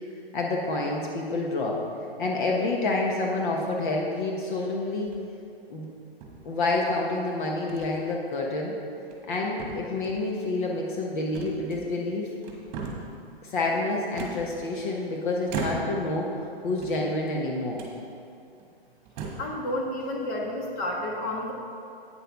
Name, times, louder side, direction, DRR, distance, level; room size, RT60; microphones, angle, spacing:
voice 1, 0.3-1.8 2.2-5.1 5.7-5.9 6.4-8.7 9.3-12.3 13.4-16.3 16.6-17.8, left 2 dB, 55° left, -1 dB, 1.3 m, -28 dB
sound 1, 5.0-5.4 6.2-6.9 7.7-7.9 8.3-8.5 9.0-9.3 9.6-10.3 11.3-12.1 12.4-13.2 14.2-15.0 15.5-16.1 16.7-17.4 17.7-18.0 18.6-18.7 19.0-19.6, right 4 dB, 30° right, 1.7 m, -37 dB
voice 2, 19.4-21.5, left 1 dB, 35° left, -1 dB, 1.4 m, -30 dB
9.0 x 6.8 x 5.3 m, 2.6 s
hypercardioid pair, 130°, 31 cm